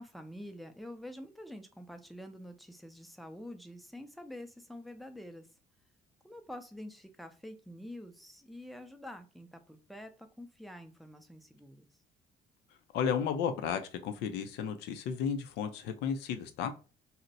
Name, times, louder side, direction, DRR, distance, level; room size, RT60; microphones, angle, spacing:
voice 1, 0.0-5.5 6.2-11.9, left 1 dB, ahead, 0.5 m, -47 dB
voice 2, 12.9-16.7, left 7 dB, 85° left, 0.5 m, -33 dB
2.6 x 2.1 x 4.0 m
cardioid pair, 110°, 17 cm